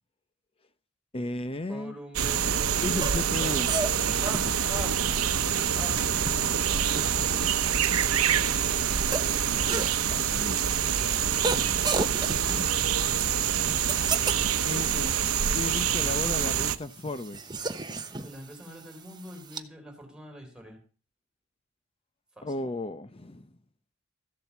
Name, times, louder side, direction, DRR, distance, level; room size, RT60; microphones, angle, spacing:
voice 1, 1.1-2.0 2.8-3.7 10.1-10.6 14.6-15.2 15.5-17.6 22.4-23.5, left 2 dB, 25° left, 0.7 m, -34 dB
voice 2, 1.7-3.5 4.2-5.0 5.8-5.9 18.2-20.8 22.4-22.5, equal, 5° right, 4.0 m, -44 dB
sound 1, 2.1-16.8, right 8 dB, 90° right, 0.9 m, -26 dB
sound 2, 2.8-19.6, right 3 dB, 20° right, 1.0 m, -36 dB
14.5 x 7.7 x 7.1 m
head